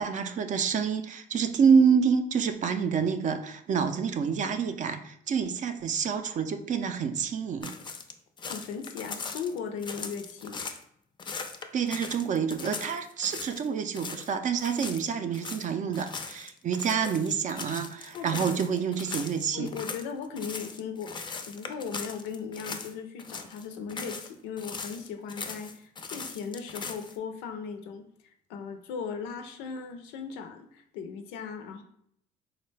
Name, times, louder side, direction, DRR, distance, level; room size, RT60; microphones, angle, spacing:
voice 1, 0.0-7.7 11.7-19.7, right 6 dB, 45° right, 9 dB, 0.4 m, -27 dB
sound 1, 7.6-10.8 11.2-13.7 13.9-14.3 14.6-22.9 23.2-24.3 24.6-27.2, left 4 dB, 25° left, 0.4 m, -39 dB
voice 2, 8.4-10.7 18.1-18.6 19.5-31.8, left 6 dB, 90° left, 8 dB, 0.4 m, -38 dB
3.8 x 2.1 x 3.2 m, 0.69 s
supercardioid pair, 80°, 18 cm